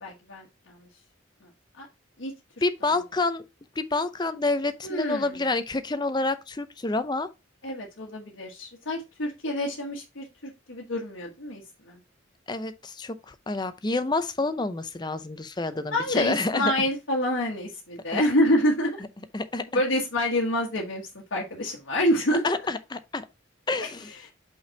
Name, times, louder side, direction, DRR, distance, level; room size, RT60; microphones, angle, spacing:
voice 1, 0.0-0.8 1.8-1.9 2.2-2.3 4.8-5.3 7.6-10.3 10.7-11.6 11.9-12.0 15.9-19.0 19.7-21.0 21.3-22.5 23.8-23.9, left 1 dB, 75° left, 1.3 m, -27 dB
voice 2, 2.6-3.4 3.8-7.3 12.5-16.7 18.1-18.2 19.3-19.8 22.4-23.3 23.7-24.1, left 3 dB, 20° left, 0.5 m, -28 dB
5.5 x 5.1 x 4.3 m
head